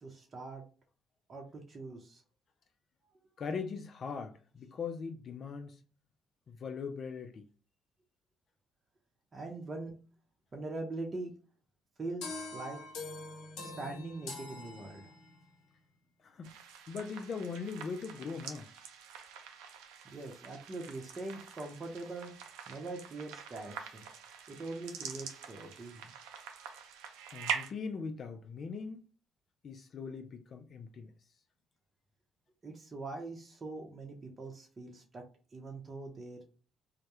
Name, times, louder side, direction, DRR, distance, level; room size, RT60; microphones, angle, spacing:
voice 1, 0.0-0.6 1.3-2.2 9.3-9.9 10.5-11.3 12.0-12.8 13.6-15.1 20.0-22.3 22.7-24.1 24.5-26.1 32.6-35.2 35.5-36.4, right 2 dB, 40° right, 0.7 m, -42 dB
voice 2, 3.4-5.8 6.5-7.5 16.2-16.6 16.9-18.7 27.3-29.0 29.6-31.1, left 5 dB, 55° left, 0.3 m, -40 dB
sound 1, 12.2-15.5, left 2 dB, 85° left, 0.7 m, -44 dB
sound 2, 16.4-27.7, right 7 dB, 90° right, 0.4 m, -44 dB
2.2 x 2.0 x 2.9 m
supercardioid pair, 65°, 0 cm